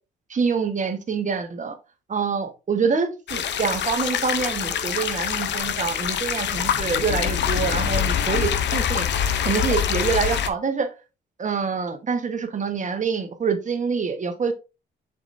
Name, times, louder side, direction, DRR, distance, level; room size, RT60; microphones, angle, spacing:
voice 1, 0.3-1.8 2.1-9.0 9.4-10.9 11.4-14.5, right 5 dB, 40° right, 7 dB, 1.3 m, -26 dB
sound 1, 3.3-10.5, left 8 dB, 65° left, 0.8 m, -25 dB
7.4 x 5.0 x 2.7 m, 0.29 s
cardioid pair, 90°, 20 cm